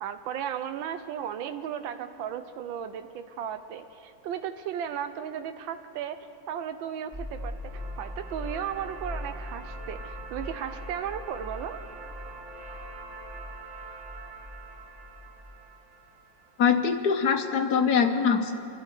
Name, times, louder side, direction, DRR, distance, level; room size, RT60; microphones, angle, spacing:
voice 1, 0.0-6.2 6.5-7.6 8.0-11.8, right 9 dB, 90° right, 9 dB, 1.4 m, -35 dB
sound 1, 7.1-15.5, left 1 dB, 25° right, 3.1 m, -41 dB
sound 2, 7.1-17.2, right 3 dB, 45° right, 1.4 m, -46 dB
voice 2, 16.6-18.5, left 6 dB, 65° left, 6 dB, 1.2 m, -23 dB
26.5 x 12.0 x 4.5 m, 2.7 s
omnidirectional pair, 2.0 m